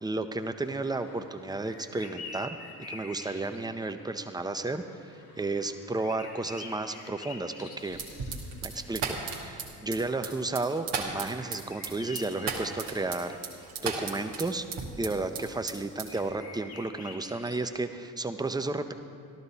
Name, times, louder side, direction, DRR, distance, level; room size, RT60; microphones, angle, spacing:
voice 1, 0.0-2.6 2.9-8.0 8.6-13.4 13.8-14.7 15.0-18.9, right 2 dB, 10° right, 8 dB, 0.7 m, -33 dB
sound 1, 0.6-9.6 9.9-10.0 10.3-10.5 11.4-13.7 16.1-17.7, left 3 dB, 55° left, 1.5 m, -47 dB
sound 2, 7.9-15.4 15.7-16.3, right 5 dB, 90° right, 1.2 m, -35 dB
13.0 x 12.5 x 4.1 m, 2.4 s
hypercardioid pair, 50°, 45 cm